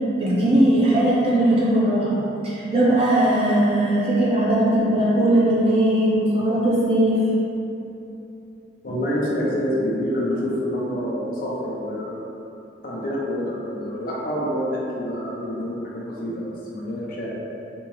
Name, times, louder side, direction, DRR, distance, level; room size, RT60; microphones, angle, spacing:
voice 1, 0.2-2.2 2.4-7.2, right 1 dB, 35° right, -8 dB, 0.7 m, -19 dB
voice 2, 8.8-12.1 12.8-17.3, equal, 50° left, -5 dB, 0.5 m, -27 dB
3.4 x 2.0 x 3.0 m, 2.8 s
head